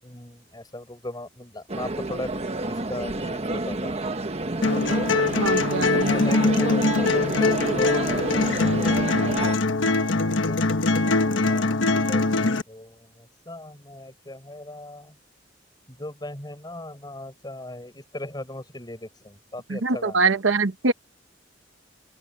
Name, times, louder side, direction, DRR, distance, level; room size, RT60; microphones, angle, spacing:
voice 1, 0.0-4.0 5.8-9.7 10.1-15.2 15.9-20.2, left 1 dB, 20° left, 7.2 m, -39 dB
sound 1, 1.7-9.6, right 2 dB, 35° right, 1.3 m, -29 dB
sound 2, 4.6-12.6, left 3 dB, 85° left, 1.2 m, -22 dB
voice 2, 5.4-6.1 19.7-20.9, right 4 dB, 85° right, 1.1 m, -23 dB
open air
head